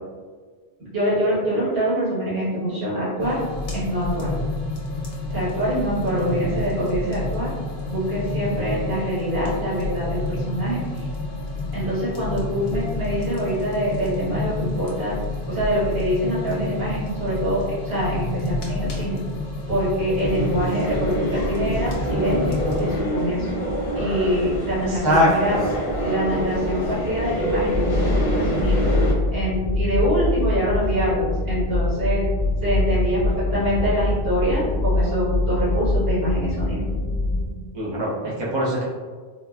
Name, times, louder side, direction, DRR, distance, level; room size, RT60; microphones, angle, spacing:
voice 1, 0.8-3.4 3.7-4.3 5.3-7.5 7.9-11.1 11.7-15.1 15.5-19.2 19.7-23.6 23.9-25.6 26.0-28.9 29.3-32.3 32.6-36.8, equal, 70° right, -10 dB, 1.6 m, -25 dB
sound 1, 3.2-23.0, left 2 dB, 70° left, 0.8 m, -29 dB
sound 2, 20.2-29.1, equal, 40° left, 0.6 m, -26 dB
voice 2, 25.0-25.7 37.7-38.8, equal, 35° right, -6 dB, 0.5 m, -21 dB
sound 3, 27.7-37.4, left 2 dB, 20° left, 1.0 m, -24 dB
3.7 x 2.1 x 2.3 m, 1.5 s
omnidirectional pair, 1.1 m